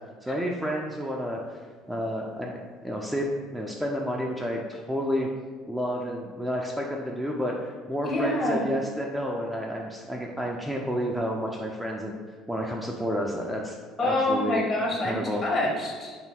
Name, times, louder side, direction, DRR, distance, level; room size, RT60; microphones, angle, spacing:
voice 1, 0.2-1.4 1.9-5.3 5.7-12.2 12.5-13.8 14.0-14.7 15.0-15.4, equal, 5° right, -1 dB, 0.4 m, -30 dB
voice 2, 8.0-8.7 14.0-16.2, left 1 dB, 30° left, -2 dB, 1.1 m, -26 dB
3.3 x 2.7 x 4.4 m, 1.5 s
figure-of-eight pair, 60°, 0 cm